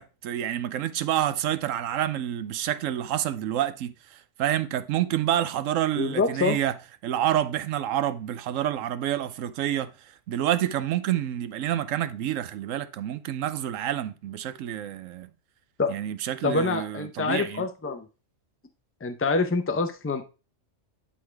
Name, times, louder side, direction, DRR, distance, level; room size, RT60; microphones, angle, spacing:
voice 1, 0.0-6.7 7.0-9.9 10.3-15.3 15.9-17.7, right 11 dB, 85° right, 1.0 m, -28 dB
voice 2, 6.0-6.6 15.8-15.9 16.4-18.0 19.0-20.2, left 4 dB, 15° left, 0.5 m, -26 dB
11.5 x 3.8 x 3.3 m
omnidirectional pair, 1.3 m